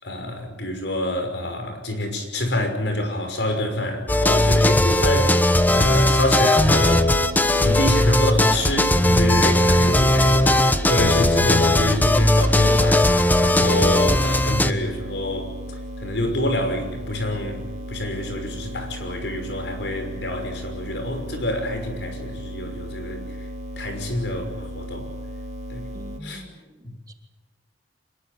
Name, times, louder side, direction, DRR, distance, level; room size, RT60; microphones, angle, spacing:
voice 1, 0.0-5.4 5.7-7.1 7.6-17.6 17.9-23.5 23.8-25.1 25.7-25.8 26.2-26.4 26.8-26.9, left 1 dB, 75° left, 6 dB, 5.8 m, -27 dB
sound 1, 4.1-14.7, left 1 dB, 10° left, 1.0 m, -18 dB
sound 2, 6.5-26.2, equal, 40° right, 2.7 m, -35 dB
voice 2, 25.9-27.1, right 1 dB, 20° right, 4 dB, 2.6 m, -45 dB
25.5 x 21.5 x 8.4 m, 1.0 s
head